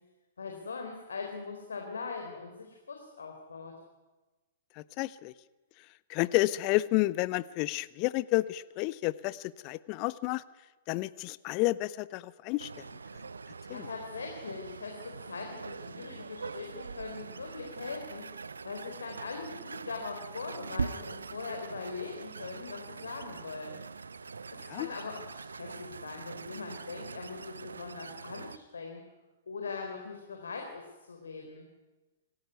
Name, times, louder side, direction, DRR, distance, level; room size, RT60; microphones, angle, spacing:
voice 1, 0.4-3.8 13.7-23.8 24.5-29.0 29.5-31.7, left 4 dB, 70° left, 2 dB, 4.1 m, -41 dB
voice 2, 4.8-5.3 6.1-10.4 10.9-12.8 13.7-13.9 24.7-24.9, left 19 dB, 35° left, 18 dB, 0.8 m, -30 dB
sound 1, 12.6-28.6, right 4 dB, 75° right, 0.8 m, -42 dB
26.5 x 15.0 x 9.4 m, 1.2 s
figure-of-eight pair, 110°, 0 cm